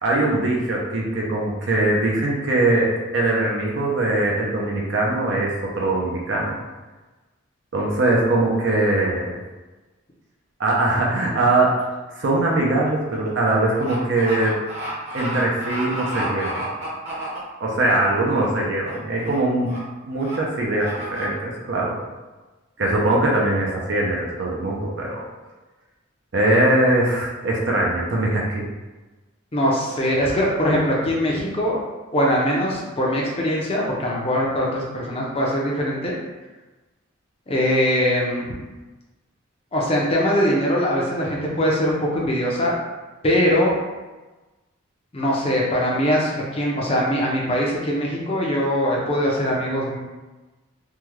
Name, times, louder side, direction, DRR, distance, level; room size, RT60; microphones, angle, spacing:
voice 1, 0.0-6.6 7.7-9.3 10.6-11.8 12.1-14.5 15.1-16.6 17.6-19.8 20.0-22.0 22.8-25.2 26.3-28.7, right 2 dB, 60° right, -3 dB, 0.6 m, -21 dB
sound 1, 11.8-12.0 12.4-17.9 18.3-18.6 18.9-19.4 19.6-19.8 20.2-20.4 20.8-21.3, right 1 dB, 35° right, 0.8 m, -32 dB
voice 2, 29.5-31.8 32.1-36.2 37.5-38.5 39.7-42.7 43.2-43.8 45.1-50.0, equal, 30° left, -3 dB, 0.6 m, -22 dB
3.5 x 2.2 x 3.0 m, 1.2 s
head